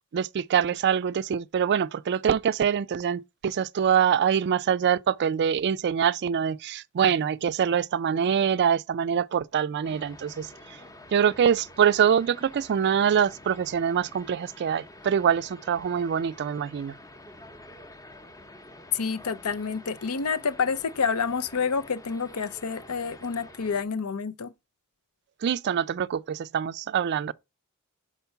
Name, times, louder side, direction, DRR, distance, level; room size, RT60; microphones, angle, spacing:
voice 1, 0.1-10.5 11.1-16.9 25.4-27.3, right 8 dB, 50° right, 0.3 m, -24 dB
sound 1, 9.8-23.8, left 1 dB, 15° left, 0.8 m, -48 dB
voice 2, 18.9-24.5, left 5 dB, 75° left, 0.7 m, -28 dB
5.8 x 4.5 x 5.4 m
head